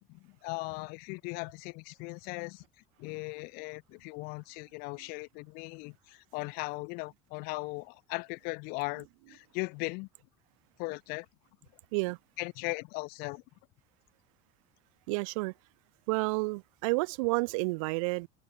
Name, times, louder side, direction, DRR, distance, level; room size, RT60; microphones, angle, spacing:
voice 1, 0.0-2.6 3.0-10.1 10.8-11.2 12.4-13.4, left 29 dB, 65° left, 1.8 m, -38 dB
voice 2, 15.1-15.5 16.1-18.3, right 28 dB, 80° right, 1.5 m, -30 dB
open air
cardioid pair, 140°, 17 cm